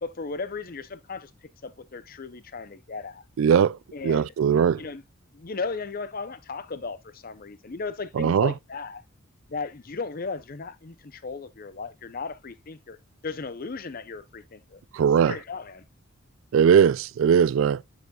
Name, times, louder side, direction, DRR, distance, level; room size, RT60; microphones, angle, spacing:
voice 1, 0.0-1.3 1.6-3.2 3.9-5.0 5.3-9.0 9.5-13.0 13.2-14.8 15.3-15.8, left 4 dB, 45° left, 0.6 m, -36 dB
voice 2, 3.4-3.8 4.0-4.8 8.2-8.5 14.9-15.4 16.5-17.8, right 7 dB, 70° right, 0.3 m, -20 dB
6.9 x 6.6 x 2.3 m
head